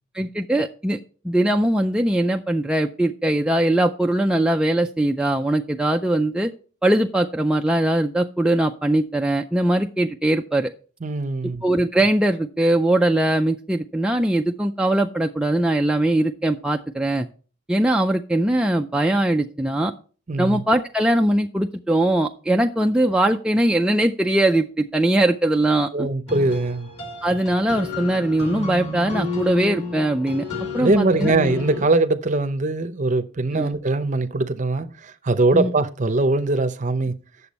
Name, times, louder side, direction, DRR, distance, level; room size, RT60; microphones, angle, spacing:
voice 1, 0.1-1.0 1.2-6.5 6.8-10.7 11.6-17.3 17.7-19.9 20.4-26.1 27.2-30.4 30.7-31.3 33.5-33.7 35.5-35.7, right 1 dB, 5° right, 0.3 m, -21 dB
voice 2, 11.0-11.6 20.3-20.6 25.9-26.9 30.8-37.1, right 2 dB, 40° right, 0.6 m, -21 dB
sound 1, 26.3-31.8, left 3 dB, 30° left, 2.5 m, -31 dB
8.6 x 6.9 x 4.1 m
head